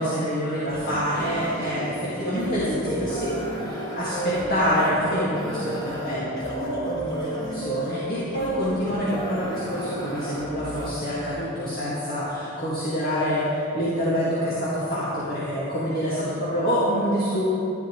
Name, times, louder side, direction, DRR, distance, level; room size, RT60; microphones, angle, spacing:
voice 1, 0.0-17.4, equal, 45° left, -9 dB, 1.9 m, -26 dB
sound 1, 0.7-11.3, right 1 dB, 20° left, 1.5 m, -33 dB
12.0 x 11.0 x 3.1 m, 2.9 s
head